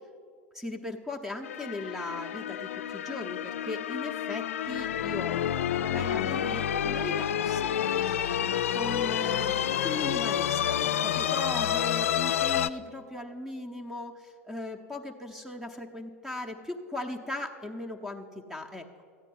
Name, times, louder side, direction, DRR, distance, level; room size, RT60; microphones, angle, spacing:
voice 1, 0.5-5.4 5.7-8.3 8.7-18.2 18.5-19.0, left 1 dB, 5° right, 2 dB, 0.8 m, -38 dB
sound 1, 1.4-12.7, left 10 dB, 75° left, 0.3 m, -29 dB
13.5 x 9.0 x 5.6 m, 2.2 s
hypercardioid pair, 85°, 7 cm